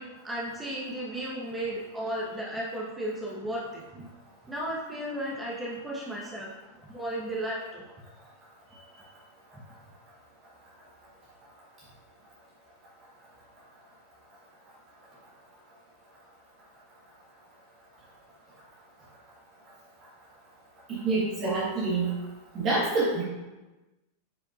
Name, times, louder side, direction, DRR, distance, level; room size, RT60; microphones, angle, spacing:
voice 1, 0.0-4.1 4.4-6.5 6.9-7.8, right 1 dB, 10° right, -5 dB, 1.2 m, -34 dB
voice 2, 20.9-22.1 22.5-23.2, right 3 dB, 30° right, -5 dB, 1.6 m, -26 dB
9.3 x 5.1 x 2.5 m, 1.1 s
figure-of-eight pair, 90°, 0 cm